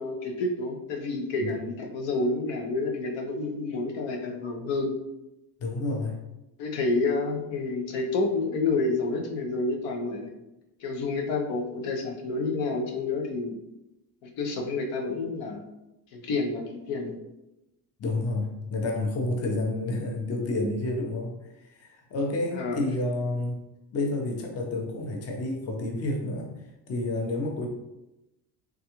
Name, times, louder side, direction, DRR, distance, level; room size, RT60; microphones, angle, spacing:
voice 1, 0.0-4.9 6.6-10.3 10.8-13.6 14.2-15.6 16.1-17.2 22.5-22.8, left 3 dB, 85° left, 1 dB, 0.7 m, -29 dB
voice 2, 5.6-6.2 18.0-23.6 23.9-26.5 26.9-27.7, left 2 dB, 35° left, 2 dB, 0.6 m, -29 dB
3.5 x 2.3 x 2.9 m, 0.92 s
cardioid pair, 115°, 44 cm